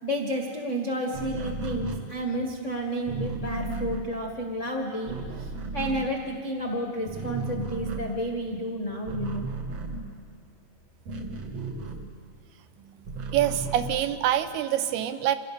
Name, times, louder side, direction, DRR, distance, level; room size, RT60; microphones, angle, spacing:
voice 1, 0.0-5.2 5.7-9.5, equal, 70° left, 1 dB, 0.7 m, -31 dB
sound 1, 1.1-6.7 7.0-12.5 12.8-14.6, right 3 dB, 55° right, 2.1 m, -36 dB
voice 2, 13.3-15.4, right 11 dB, 80° right, 10 dB, 2.9 m, -26 dB
27.0 x 17.5 x 6.9 m, 2.1 s
omnidirectional pair, 4.5 m